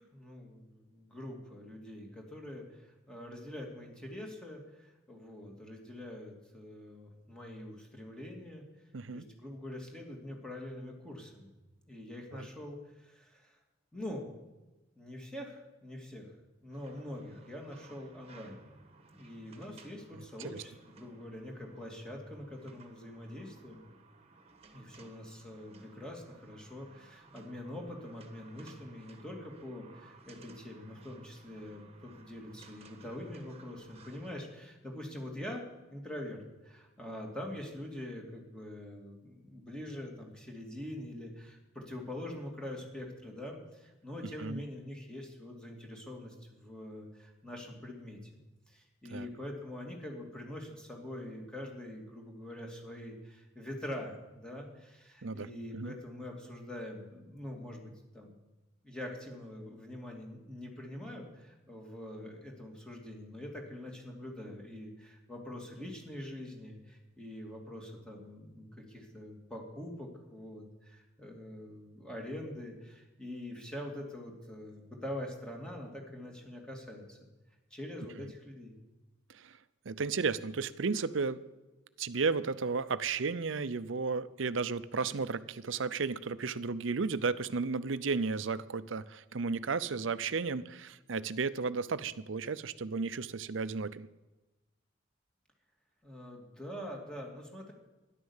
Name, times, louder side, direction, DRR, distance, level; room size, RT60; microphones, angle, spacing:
voice 1, 0.0-8.6 9.1-11.6 11.9-13.6 13.9-14.3 15.0-16.3 16.6-18.6 19.1-23.8 24.7-35.6 35.9-48.2 48.7-58.3 58.8-77.2 77.7-78.8 96.0-97.7, left 1 dB, 5° left, 0 dB, 2.6 m, -44 dB
voice 2, 8.9-9.2 12.3-12.5 20.4-20.6 44.4-44.6 49.1-49.3 55.2-55.9 79.3-79.6 79.9-81.4 82.0-94.1, right 4 dB, 75° right, 15 dB, 0.6 m, -33 dB
sound 1, 16.7-34.4, right 3 dB, 35° right, 1.5 m, -58 dB
13.0 x 11.0 x 7.3 m, 1.1 s
head